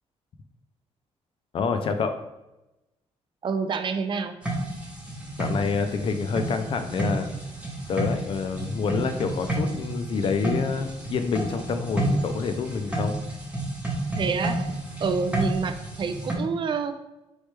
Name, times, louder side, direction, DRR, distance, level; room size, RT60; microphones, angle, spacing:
voice 1, 1.5-2.2 5.4-7.3 7.9-13.2, left 5 dB, 45° left, 7 dB, 0.4 m, -27 dB
voice 2, 3.4-4.3 14.2-14.6 15.0-16.9, right 5 dB, 45° right, 9 dB, 0.3 m, -27 dB
sound 1, 4.4-16.3, right 1 dB, 10° right, 0.9 m, -31 dB
4.2 x 3.2 x 3.3 m, 0.98 s
cardioid pair, 135°, 12 cm